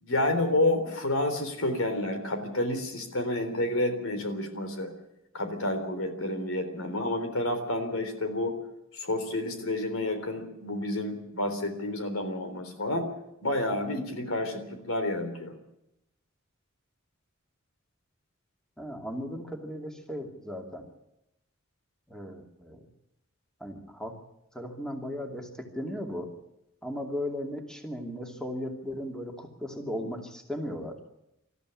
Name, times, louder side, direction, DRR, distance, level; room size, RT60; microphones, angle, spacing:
voice 1, 0.0-4.9 5.3-8.6 8.9-13.1 13.4-15.5, left 1 dB, 90° left, 7 dB, 3.7 m, -29 dB
voice 2, 18.8-20.8 22.1-22.9 23.6-24.2 24.5-26.3 26.8-30.9, equal, 5° left, 3 dB, 2.6 m, -36 dB
19.5 x 14.0 x 9.8 m, 0.85 s
head